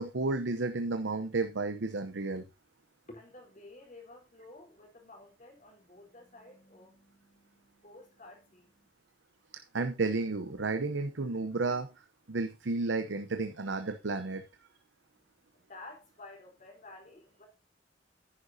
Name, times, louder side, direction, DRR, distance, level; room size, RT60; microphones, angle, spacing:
voice 1, 0.0-2.4 9.5-11.9 12.3-14.4, right 3 dB, 70° right, 0.8 m, -32 dB
voice 2, 3.1-8.9 15.5-17.5, left 2 dB, 45° left, 3.9 m, -52 dB
10.5 x 9.8 x 2.8 m
head